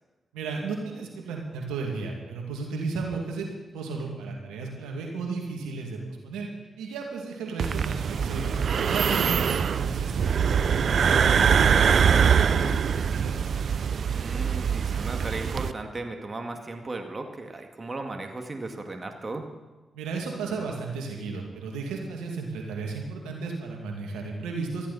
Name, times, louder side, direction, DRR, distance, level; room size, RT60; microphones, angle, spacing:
voice 1, 0.3-3.5 3.7-6.5 6.8-9.4 9.7-13.3 19.9-24.9, right 4 dB, 90° right, 0 dB, 2.4 m, -34 dB
sound 1, 7.6-15.7, right 7 dB, 65° right, 0.6 m, -23 dB
voice 2, 9.1-9.6 14.0-19.5, right 2 dB, 40° right, 4 dB, 2.1 m, -36 dB
19.5 x 14.5 x 4.2 m, 1.2 s
supercardioid pair, 40°, 0 cm